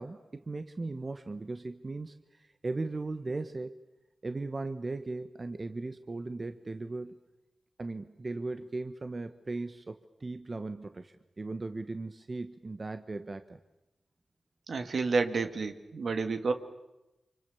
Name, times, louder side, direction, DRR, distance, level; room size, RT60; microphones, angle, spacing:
voice 1, 0.0-3.8 4.2-7.2 7.8-13.6, right 3 dB, 45° right, 9 dB, 1.3 m, -38 dB
voice 2, 14.7-16.5, right 4 dB, 70° right, 7 dB, 2.2 m, -30 dB
29.5 x 25.5 x 7.2 m, 0.94 s
cardioid pair, 40°, 0 cm